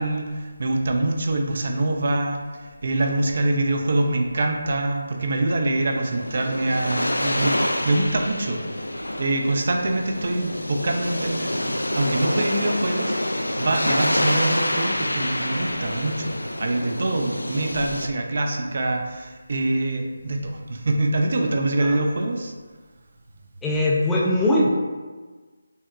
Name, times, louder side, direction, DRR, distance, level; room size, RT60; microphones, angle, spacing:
voice 1, 0.0-2.4 2.8-8.6 9.2-22.5, right 2 dB, 50° right, 3 dB, 0.5 m, -24 dB
sound 1, 5.8-18.1, left 1 dB, 90° left, 0.3 m, -27 dB
voice 2, 23.6-24.7, left 1 dB, 5° left, -5 dB, 0.4 m, -21 dB
5.4 x 2.2 x 2.4 m, 1.4 s
figure-of-eight pair, 155°, 0 cm